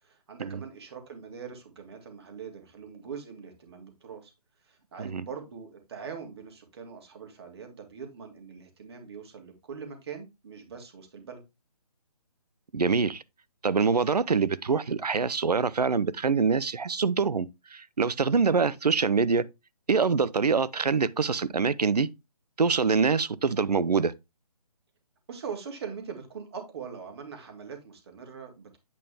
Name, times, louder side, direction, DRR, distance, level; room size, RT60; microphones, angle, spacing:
voice 1, 0.0-4.3 4.6-11.4 25.3-28.8, right 6 dB, 40° right, 3.1 m, -42 dB
voice 2, 12.7-13.2 13.6-19.4 19.9-22.1 22.6-24.1, right 5 dB, 80° right, 0.8 m, -25 dB
9.4 x 5.2 x 3.5 m
figure-of-eight pair, 155°, 20 cm